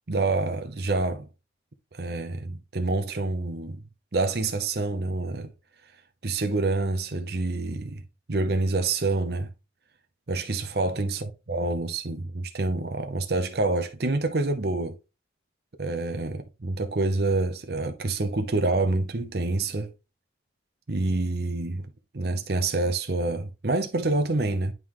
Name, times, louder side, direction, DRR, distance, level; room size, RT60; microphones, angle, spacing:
voice 1, 0.1-1.3 1.9-3.8 4.1-5.5 6.2-8.0 8.3-9.5 10.3-11.2 11.5-15.0 15.8-19.9 20.9-21.8 22.1-24.7, right 2 dB, 55° right, 0.7 m, -27 dB
11.0 x 3.8 x 3.0 m
head